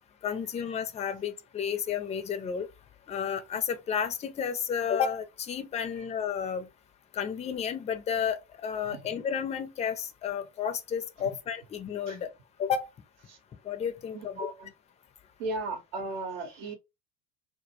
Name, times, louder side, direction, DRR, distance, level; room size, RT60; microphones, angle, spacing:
voice 1, 0.2-2.7 3.1-6.7 7.1-12.3 12.6-12.9 13.7-14.5, left 7 dB, 20° left, 0.4 m, -32 dB
voice 2, 14.1-14.7 15.4-16.7, right 2 dB, 65° right, 0.8 m, -36 dB
2.2 x 2.1 x 2.8 m
hypercardioid pair, 80°, 38 cm